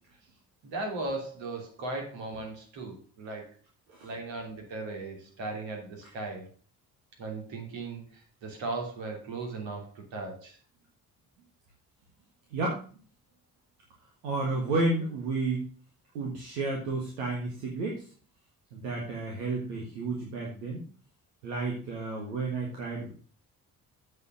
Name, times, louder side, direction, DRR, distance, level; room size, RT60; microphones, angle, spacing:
voice 1, 0.6-3.5 4.0-6.5 7.2-10.6 22.1-22.3, right 2 dB, 65° right, 1 dB, 3.1 m, -37 dB
voice 2, 12.5-12.8 14.2-15.6 16.1-18.0 18.7-20.8 21.4-23.1, right 3 dB, 80° right, -1 dB, 1.8 m, -31 dB
8.1 x 5.3 x 6.3 m, 0.40 s
hypercardioid pair, 45°, 48 cm